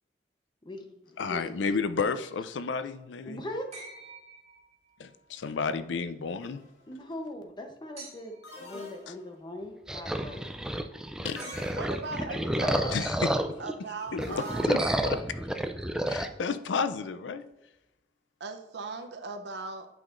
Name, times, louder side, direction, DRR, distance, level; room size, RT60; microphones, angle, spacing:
voice 1, 0.6-1.0 1.3-1.4 3.3-3.9 6.9-10.4 12.1-13.1, left 1 dB, 25° left, 5 dB, 0.8 m, -40 dB
voice 2, 1.2-3.4 5.0-6.6 9.1-9.2 11.2-11.4 12.9-13.3 14.1-15.2 16.1-17.4, left 5 dB, 85° left, 12 dB, 0.4 m, -32 dB
sound 1, 3.7-5.1 8.0-8.6 11.4-12.2 14.8-15.8 17.4-17.5, right 4 dB, 35° right, 2.5 m, -47 dB
sound 2, 6.4-6.8 8.4-9.5 11.2-12.3 14.2-15.1, left 2 dB, 65° left, 2.2 m, -46 dB
sound 3, 9.9-13.7 14.1-16.3, right 1 dB, 5° right, 0.3 m, -30 dB
voice 3, 11.8-13.0 13.6-14.7 18.4-19.9, right 3 dB, 70° right, 7 dB, 0.7 m, -38 dB
9.0 x 5.7 x 2.5 m, 0.96 s
head